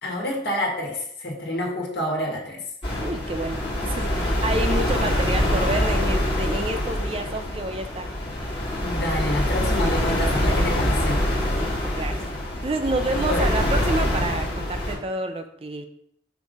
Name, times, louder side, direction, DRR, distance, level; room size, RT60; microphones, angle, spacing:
voice 1, 0.0-2.6 8.8-11.2 13.1-13.5, left 1 dB, 60° left, -2 dB, 1.7 m, -28 dB
sound 1, 2.8-14.9, left 1 dB, 30° left, 2.1 m, -24 dB
voice 2, 3.0-8.1 11.6-12.2 12.6-15.9, right 2 dB, 30° right, 7 dB, 0.4 m, -29 dB
5.9 x 3.6 x 5.2 m, 0.70 s
head